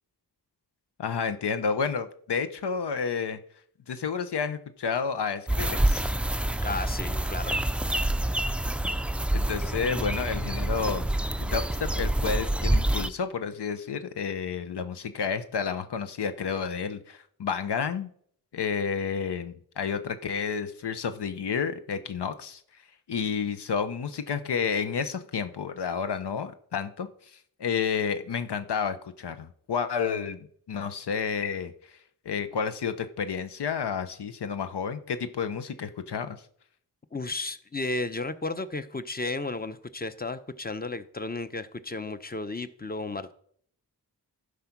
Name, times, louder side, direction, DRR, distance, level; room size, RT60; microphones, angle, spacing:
voice 1, 1.0-3.4 3.9-6.2 9.3-18.1 18.5-22.6 23.1-27.1 27.6-32.0 32.2-36.4, left 6 dB, 85° left, 0.8 m, -30 dB
sound 1, 5.5-13.1, right 1 dB, 5° right, 0.3 m, -27 dB
voice 2, 6.6-7.6 37.1-43.3, left 3 dB, 25° left, 0.7 m, -33 dB
12.0 x 5.0 x 5.9 m
wide cardioid pair, 75°, 39 cm